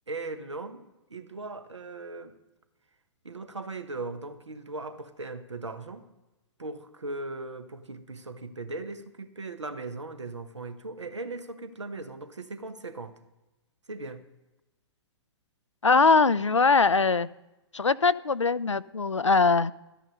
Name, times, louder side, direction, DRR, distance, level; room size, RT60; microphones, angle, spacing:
voice 1, 0.1-2.3 3.2-6.0 6.6-13.2 13.9-14.2, right 3 dB, 80° right, 10 dB, 1.1 m, -38 dB
voice 2, 15.8-17.3 17.7-19.7, left 4 dB, 85° left, 18 dB, 0.4 m, -21 dB
13.0 x 10.0 x 5.5 m, 1.0 s
figure-of-eight pair, 110°, 15 cm